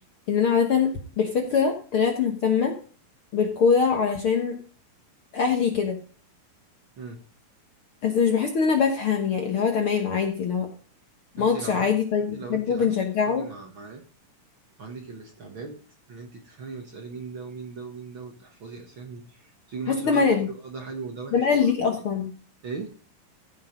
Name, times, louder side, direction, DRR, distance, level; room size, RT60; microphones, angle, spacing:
voice 1, 0.3-0.9 1.2-2.7 3.3-4.6 5.3-6.0 8.0-10.7 11.4-13.4 19.9-20.5 21.3-22.3, left 6 dB, 60° left, 4 dB, 1.5 m, -23 dB
voice 2, 11.4-12.0 12.3-12.9 13.2-14.0 14.8-15.8 16.1-21.7 22.6-22.9, right 4 dB, 50° right, 3 dB, 1.6 m, -38 dB
14.5 x 6.4 x 5.2 m, 0.40 s
omnidirectional pair, 4.1 m